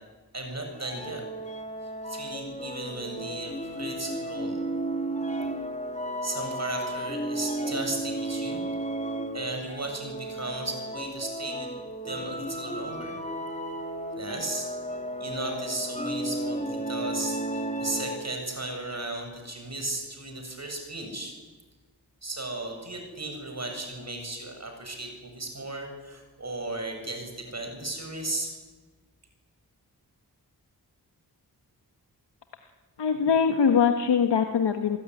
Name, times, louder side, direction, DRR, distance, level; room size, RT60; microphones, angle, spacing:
voice 1, 0.3-1.2 2.1-4.6 6.2-8.7 9.3-11.7 12.0-13.2 14.2-14.7 15.2-21.4 22.2-28.5, right 2 dB, 40° right, 4 dB, 7.6 m, -35 dB
sound 1, 0.7-18.5, right 1 dB, 15° left, 2.6 m, -34 dB
voice 2, 33.0-35.0, left 6 dB, 90° left, 6 dB, 1.6 m, -22 dB
28.5 x 19.0 x 10.0 m, 1.3 s
wide cardioid pair, 70°, 40 cm